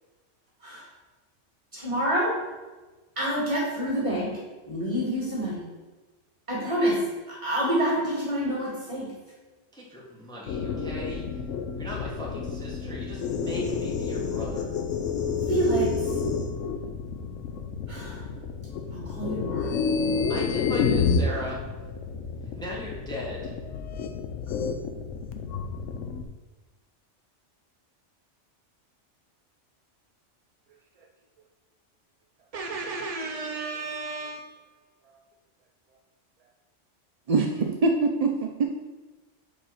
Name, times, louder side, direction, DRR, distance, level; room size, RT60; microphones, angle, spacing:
voice 1, 1.7-2.4 3.2-4.3 4.7-5.6 6.5-7.0 7.3-9.1 15.5-16.1 17.9-18.3 18.9-19.7, right 1 dB, 25° right, -5 dB, 2.4 m, -27 dB
voice 2, 9.7-11.3 11.7-14.8 20.3-21.6 22.5-23.6, left 1 dB, 5° left, -4 dB, 1.2 m, -37 dB
sound 1, 10.5-26.2, left 5 dB, 90° left, 1.0 m, -30 dB
voice 3, 32.5-34.4 37.3-38.6, right 3 dB, 55° right, 2 dB, 0.4 m, -27 dB
5.0 x 4.6 x 5.7 m, 1.2 s
omnidirectional pair, 1.2 m